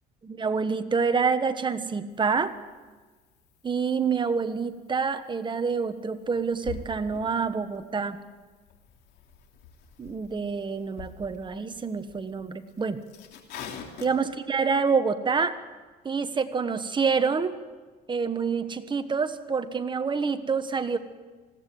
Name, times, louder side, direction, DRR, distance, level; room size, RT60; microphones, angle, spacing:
voice 1, 0.2-2.5 3.6-8.2 10.0-13.0 14.0-15.6 16.0-17.6 18.1-21.0, right 5 dB, 30° right, 10 dB, 1.2 m, -27 dB
sound 1, 2.1-14.1, left 6 dB, 80° left, 2.9 m, -47 dB
20.0 x 16.5 x 7.9 m, 1.4 s
cardioid pair, 110°, 17 cm